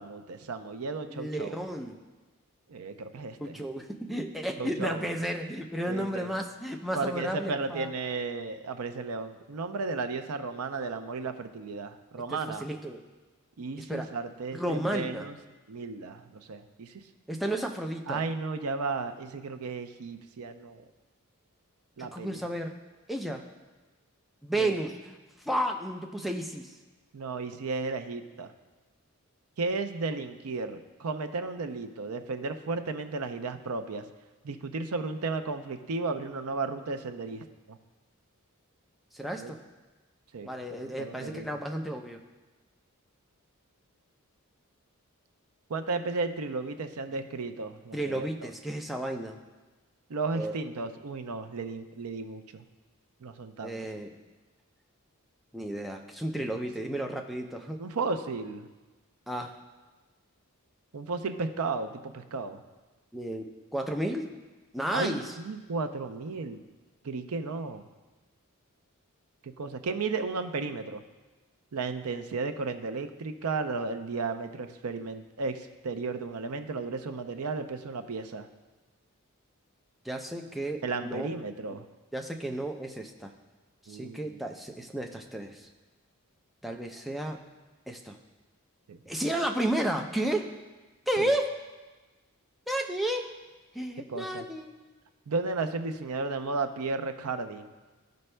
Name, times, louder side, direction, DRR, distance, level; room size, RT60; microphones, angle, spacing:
voice 1, 0.0-1.5 2.7-3.6 4.6-5.0 5.9-6.3 6.9-12.6 13.6-15.4 15.7-16.9 18.1-20.9 22.0-22.5 24.6-24.7 27.1-28.5 29.6-34.0 34.4-37.8 39.4-39.5 40.3-41.5 45.7-48.3 50.1-52.6 53.2-53.8 56.4-56.5 57.8-58.7 60.9-62.6 64.9-66.6 67.0-67.9 69.4-71.0 71.7-78.5 80.8-81.9 83.9-84.4 88.9-89.0 91.2-91.3 94.1-94.5 95.3-97.7, right 3 dB, 85° right, 9 dB, 0.5 m, -34 dB
voice 2, 1.1-2.0 3.4-7.9 12.3-13.0 13.9-14.1 14.5-15.3 17.3-18.2 22.0-22.8 23.1-23.5 24.4-25.2 25.5-26.7 39.1-39.6 40.4-42.2 47.9-49.4 50.3-50.5 53.6-54.1 55.5-57.8 59.3-59.5 63.1-64.3 64.7-65.2 80.0-81.3 82.1-83.3 83.9-85.7 86.6-87.4 87.9-88.2 89.1-90.5 91.1-91.6 92.7-93.3 93.7-94.7, right 1 dB, ahead, 2 dB, 0.5 m, -32 dB
14.5 x 5.2 x 2.2 m, 1.2 s
head